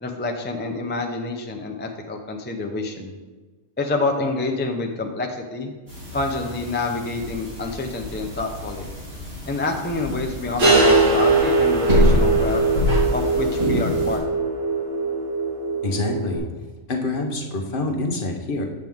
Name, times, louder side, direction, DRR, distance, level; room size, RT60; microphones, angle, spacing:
voice 1, 0.0-3.1 3.8-5.7 6.1-8.9 9.5-12.6 13.1-14.2, left 3 dB, 20° left, 3 dB, 0.3 m, -27 dB
sound 1, 5.9-14.2, left 1 dB, 50° right, 2.8 m, -26 dB
sound 2, 10.6-16.4, right 3 dB, 90° right, 1.7 m, -21 dB
voice 2, 15.8-16.4 16.9-18.6, left 2 dB, 45° left, 2 dB, 1.0 m, -26 dB
7.8 x 7.3 x 3.6 m, 1.3 s
omnidirectional pair, 1.3 m